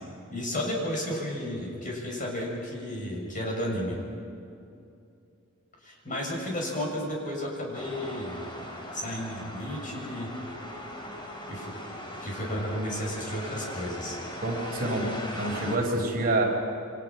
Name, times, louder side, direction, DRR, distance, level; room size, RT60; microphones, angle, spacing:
voice 1, 0.3-4.0 5.8-8.5 8.9-10.3 11.5-11.7 12.2-14.2, equal, 40° left, -1 dB, 7.2 m, -33 dB
sound 1, 7.7-15.8, left 1 dB, 25° left, 4.0 m, -39 dB
voice 2, 14.4-16.4, right 2 dB, 45° right, 0 dB, 4.5 m, -27 dB
29.0 x 25.5 x 6.1 m, 2.6 s
head